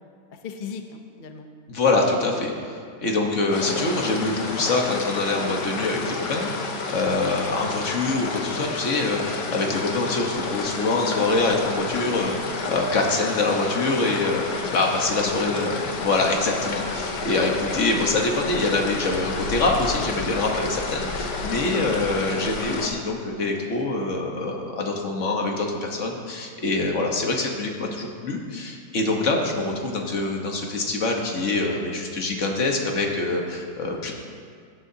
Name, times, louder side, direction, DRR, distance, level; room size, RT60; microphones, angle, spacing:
voice 1, 0.3-1.5 3.0-3.2 7.0-7.2 14.6-14.8 15.2-15.4 15.7-15.8 17.4-17.5 21.6-21.9 29.2-29.4, left 6 dB, 65° left, 5 dB, 0.5 m, -37 dB
voice 2, 1.7-2.5 3.0-34.1, left 3 dB, 50° left, 1 dB, 1.5 m, -25 dB
sound 1, 3.5-22.9, left 4 dB, 90° left, 1.6 m, -30 dB
17.0 x 9.7 x 2.8 m, 2.1 s
omnidirectional pair, 1.8 m